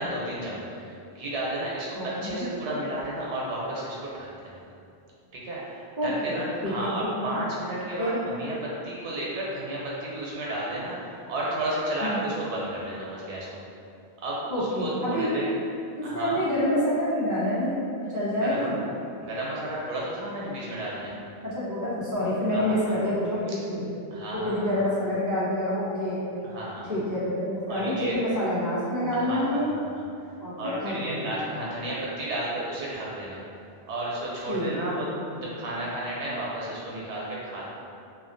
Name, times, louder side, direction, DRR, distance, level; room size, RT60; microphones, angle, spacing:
voice 1, 0.0-4.6 5.3-13.6 14.2-15.5 16.0-16.4 18.4-18.7 19.2-21.1 22.5-23.0 23.5-23.6 24.1-24.7 26.4-26.9 27.7-28.1 29.1-30.0 30.6-33.4 33.9-35.0 35.3-37.7, right 1 dB, 90° right, -5 dB, 0.9 m, -33 dB
voice 2, 1.9-2.5 6.0-7.4 8.0-8.2 12.1-12.2 14.5-15.3 16.0-17.8 18.1-18.8 21.4-23.9 24.3-26.2 26.9-29.7 30.4-31.4 34.5-35.4, left 1 dB, 30° right, -11 dB, 0.4 m, -27 dB
2.4 x 2.2 x 2.5 m, 2.5 s
omnidirectional pair, 1.1 m